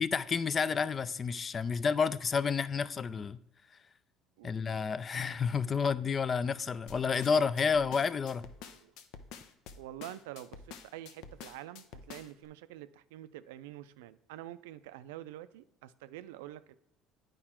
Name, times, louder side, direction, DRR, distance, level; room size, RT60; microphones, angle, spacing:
voice 1, 0.0-3.4 4.4-8.4, left 5 dB, 35° left, 0.4 m, -30 dB
sound 1, 6.9-12.5, left 6 dB, 75° left, 0.7 m, -49 dB
voice 2, 8.6-8.9 9.7-16.7, right 13 dB, 90° right, 0.4 m, -47 dB
8.8 x 4.8 x 4.3 m
supercardioid pair, 90°, 0 cm